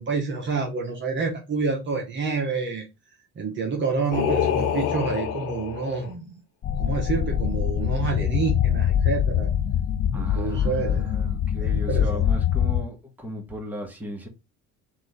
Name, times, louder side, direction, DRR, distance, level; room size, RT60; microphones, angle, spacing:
voice 1, 0.0-2.8 3.4-6.3 6.8-9.5 10.1-11.1 11.7-12.3, right 4 dB, 35° right, 1.0 m, -28 dB
Singing, 4.1-6.1, left 9 dB, 75° left, 1.2 m, -26 dB
sound 1, 6.6-12.8, left 9 dB, 35° left, 0.4 m, -24 dB
voice 2, 10.1-14.3, equal, 5° right, 1.5 m, -36 dB
3.7 x 2.7 x 4.7 m
cardioid pair, 105°, 32 cm